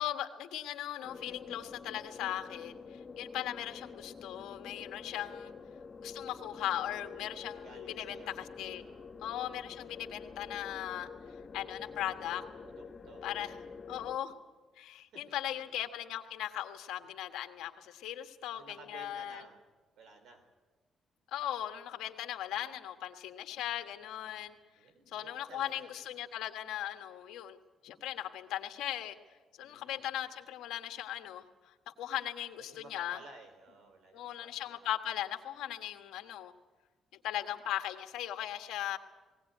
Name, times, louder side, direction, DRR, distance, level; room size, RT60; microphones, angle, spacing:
voice 1, 0.0-5.5 6.0-8.2 8.6-8.8 9.2-11.1 11.5-12.4 13.2-13.5 13.9-14.3 14.8-19.4 21.3-24.5 25.1-27.6 27.8-29.2 29.6-31.4 32.0-33.2 34.1-36.5 37.2-39.0, left 12 dB, 85° left, 6 dB, 1.5 m, -38 dB
sound 1, 1.0-14.2, left 5 dB, 35° left, 1.0 m, -47 dB
voice 2, 5.1-5.6 7.6-9.1 9.9-10.4 12.6-13.7 14.9-15.6 18.6-19.6 20.0-20.4 23.5-23.6 24.3-25.9 29.6-30.0 32.5-34.8, right 3 dB, 80° right, 7 dB, 4.2 m, -56 dB
19.5 x 17.5 x 9.3 m, 1.3 s
cardioid pair, 90°, 0 cm